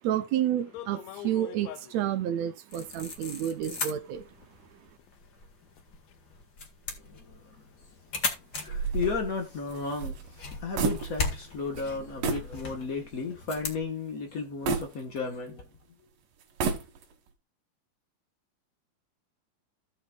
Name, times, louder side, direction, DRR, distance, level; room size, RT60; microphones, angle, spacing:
voice 1, 0.0-4.2, right 11 dB, 70° right, 1.8 m, -30 dB
sound 1, 0.7-2.0 3.0-3.1 3.8-3.9 4.3-4.4 5.0-5.1 5.7-5.8 6.1-6.2, left 13 dB, 80° left, 1.5 m, -43 dB
sound 2, 2.7-13.8, left 4 dB, 35° left, 2.1 m, -39 dB
voice 2, 7.0-7.6 8.6-15.6, left 4 dB, 60° left, 0.8 m, -34 dB
sound 3, 8.7-11.5 11.7-11.9 12.2-12.5 13.0-13.1 14.7-15.7 16.4-17.3, right 4 dB, 85° right, 3.4 m, -31 dB
16.0 x 6.7 x 2.4 m
omnidirectional pair, 3.8 m